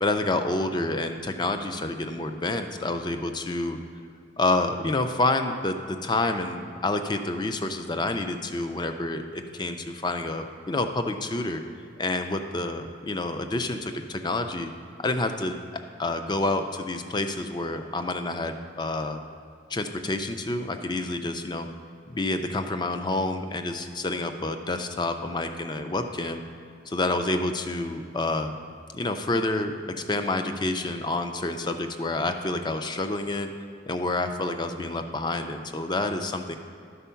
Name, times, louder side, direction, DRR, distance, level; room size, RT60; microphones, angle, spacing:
voice 1, 0.0-3.8 4.4-11.6 12.0-14.7 15.0-15.6 16.0-19.2 19.7-21.7 22.1-26.4 26.9-28.6 28.9-29.7 30.1-33.5 33.9-36.6, left 2 dB, 20° left, 7 dB, 0.4 m, -28 dB
11.5 x 4.5 x 5.6 m, 2.4 s
head